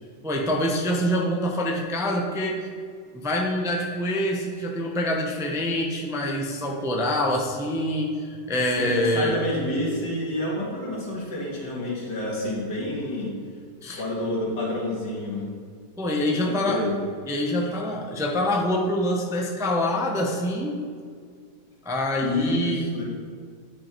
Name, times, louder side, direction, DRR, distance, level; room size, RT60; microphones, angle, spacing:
voice 1, 0.2-2.7 3.1-9.4 13.8-14.0 16.0-16.8 17.3-20.7 21.8-22.9, left 1 dB, 5° right, 0 dB, 0.4 m, -25 dB
voice 2, 8.8-13.3 14.0-15.5 16.3-17.0 17.5-18.0 22.2-23.0, left 1 dB, 85° left, -4 dB, 2.6 m, -29 dB
9.9 x 5.5 x 4.5 m, 2.1 s
omnidirectional pair, 1.8 m